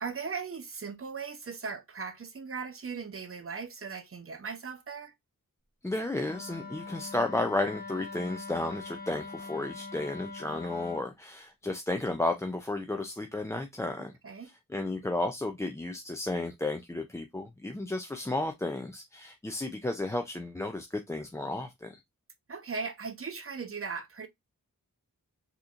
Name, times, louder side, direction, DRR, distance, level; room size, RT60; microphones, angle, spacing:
voice 1, 0.0-5.1 14.2-14.5 22.5-24.3, right 5 dB, 40° right, 0.7 m, -38 dB
voice 2, 5.8-14.1 14.4-22.0, left 2 dB, 10° left, 0.3 m, -33 dB
Wind instrument woodwind instrument, 6.2-11.1, left 3 dB, 25° left, 0.9 m, -42 dB
3.7 x 2.8 x 2.5 m
wide cardioid pair, 80°, 34 cm